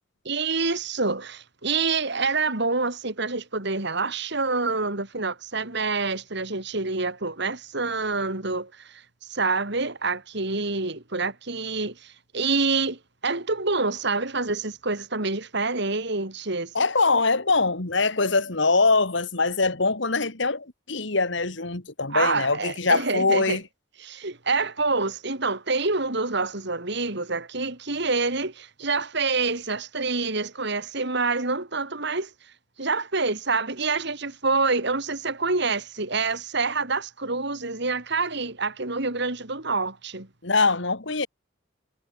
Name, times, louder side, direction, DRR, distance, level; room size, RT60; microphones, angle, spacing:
voice 1, 0.2-8.7 9.3-16.7 22.1-23.6 24.0-32.3 32.8-40.3, right 3 dB, 60° right, 3.4 m, -27 dB
voice 2, 16.7-23.6 40.4-41.3, left 3 dB, 65° left, 2.3 m, -23 dB
head